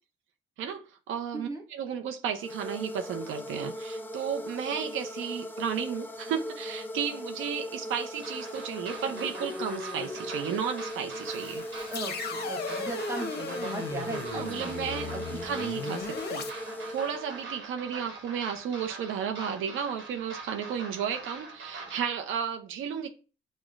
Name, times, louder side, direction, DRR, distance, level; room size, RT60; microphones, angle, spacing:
voice 1, 0.6-11.6 14.2-16.5 16.9-23.1, right 8 dB, 85° right, 0.6 m, -33 dB
sound 1, 2.4-17.6, left 1 dB, 10° left, 0.4 m, -39 dB
sound 2, 8.2-22.0, right 3 dB, 65° right, 1.1 m, -44 dB
sound 3, 11.2-16.5, left 5 dB, 55° left, 0.6 m, -37 dB
voice 2, 11.9-15.4, right 3 dB, 15° right, 1.0 m, -38 dB
6.2 x 2.1 x 2.4 m
cardioid pair, 90°, 20 cm